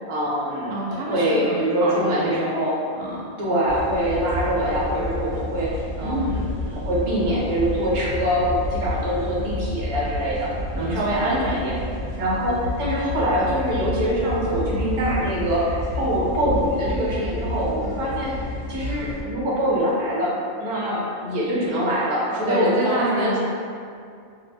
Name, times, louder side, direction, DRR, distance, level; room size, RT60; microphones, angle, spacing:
voice 1, 0.0-2.7 3.4-10.5 10.7-11.8 12.2-23.4, equal, 40° right, -6 dB, 0.5 m, -24 dB
voice 2, 0.7-2.4 2.9-3.3 6.0-6.4 10.7-11.2 22.4-23.4, right 1 dB, 70° right, -4 dB, 0.8 m, -28 dB
sound 1, 3.7-19.2, left 1 dB, 75° left, 1.3 m, -30 dB
2.7 x 2.2 x 3.3 m, 2.3 s
omnidirectional pair, 1.2 m